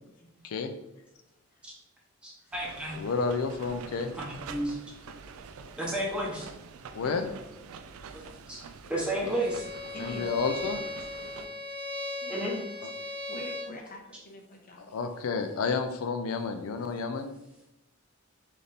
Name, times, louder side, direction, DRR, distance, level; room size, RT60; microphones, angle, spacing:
voice 1, 2.2-3.0 4.1-4.8 5.8-6.5 8.1-8.6 8.9-9.7 12.3-12.6, right 1 dB, 5° right, -4 dB, 0.9 m, -32 dB
sound 1, 2.5-11.5, right 5 dB, 85° right, 0.3 m, -46 dB
voice 2, 3.0-4.2 6.9-7.3 10.0-10.8 14.8-17.4, left 4 dB, 85° left, 6 dB, 0.4 m, -30 dB
Bowed string instrument, 9.2-13.8, left 2 dB, 50° right, 1.0 m, -38 dB
voice 3, 9.9-10.3 10.7-10.9 11.2-11.8 12.2-12.5 13.0-15.0, left 1 dB, 45° left, 2 dB, 0.7 m, -46 dB
3.4 x 2.6 x 4.0 m, 0.90 s
head